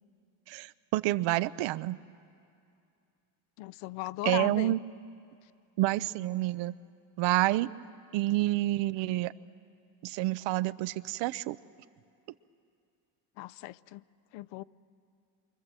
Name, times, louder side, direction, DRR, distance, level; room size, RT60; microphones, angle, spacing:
voice 1, 0.5-2.0 4.2-4.8 5.8-6.7 7.2-7.7 8.1-9.3 10.0-11.6, right 17 dB, 75° right, 16 dB, 0.7 m, -28 dB
voice 2, 3.6-4.8 13.4-14.0 14.3-14.6, left 18 dB, 75° left, 18 dB, 0.7 m, -37 dB
27.5 x 24.0 x 7.5 m, 2.5 s
cardioid pair, 105°, 44 cm